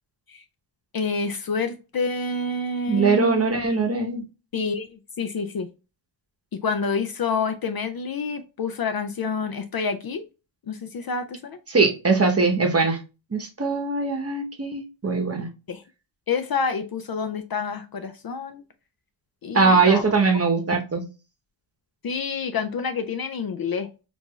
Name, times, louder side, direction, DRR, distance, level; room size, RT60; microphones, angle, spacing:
voice 1, 0.9-3.5 4.5-5.7 6.5-10.2 10.7-11.6 15.7-15.8 16.3-18.6 19.4-20.4 22.0-23.9, left 4 dB, 50° left, 8 dB, 0.4 m, -28 dB
voice 2, 2.9-4.2 11.7-13.0 13.3-15.5 19.5-21.0, right 4 dB, 30° right, 3 dB, 0.9 m, -21 dB
4.6 x 2.6 x 2.2 m, 0.30 s
wide cardioid pair, 95°, 49 cm